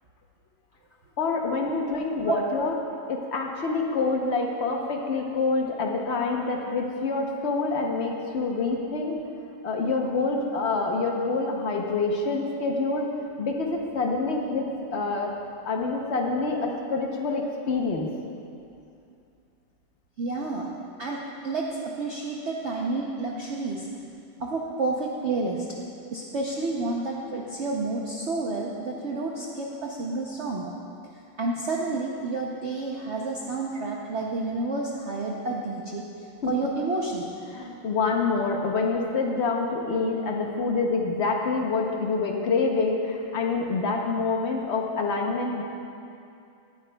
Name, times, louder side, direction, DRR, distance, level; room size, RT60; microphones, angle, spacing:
voice 1, 1.2-2.7 3.1-9.2 9.6-13.1 13.4-15.3 15.6-18.1 36.4-36.5 37.5-45.6, left 3 dB, 65° left, 1 dB, 0.6 m, -26 dB
voice 2, 2.3-2.7 20.2-20.7 21.0-23.9 24.4-25.7 26.1-30.7 31.4-36.1 36.5-37.2, right 3 dB, 85° right, -2 dB, 0.6 m, -30 dB
17.5 x 9.5 x 2.2 m, 2.6 s
omnidirectional pair, 2.2 m